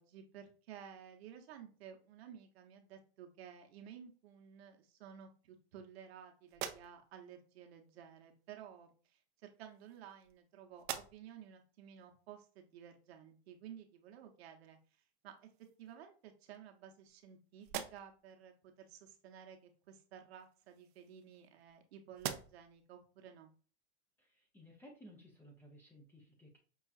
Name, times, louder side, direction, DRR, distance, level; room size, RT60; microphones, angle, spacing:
voice 1, 0.0-15.5 15.8-23.5, right 9 dB, 65° right, 4 dB, 0.9 m, -54 dB
sound 1, 6.5-7.3 8.4-8.6 9.5-10.4 10.7-11.5 12.0-12.1 14.7-14.8 15.3-16.0 16.5-17.3 17.6-18.3 20.3-21.8 22.1-22.8, right 11 dB, 50° right, 0.4 m, -46 dB
voice 2, 24.2-26.6, equal, 5° left, -1 dB, 0.6 m, -58 dB
5.5 x 2.4 x 2.3 m, 0.40 s
hypercardioid pair, 140°, 34 cm